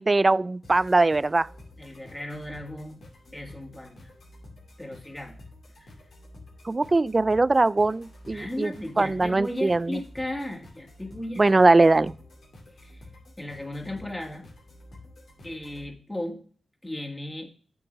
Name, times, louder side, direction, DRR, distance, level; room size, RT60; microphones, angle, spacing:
voice 1, 0.0-1.5 6.7-10.0 11.4-12.1, right 2 dB, 35° right, 0.3 m, -21 dB
sound 1, 0.6-15.9, left 1 dB, 70° left, 2.3 m, -49 dB
voice 2, 1.8-3.0 3.3-4.0 4.8-5.3 5.8-5.9 8.3-11.4 12.8-13.1 13.4-14.5 15.4-16.4 16.8-17.5, left 1 dB, 15° left, 1.9 m, -36 dB
8.2 x 3.9 x 5.4 m
cardioid pair, 50°, 0 cm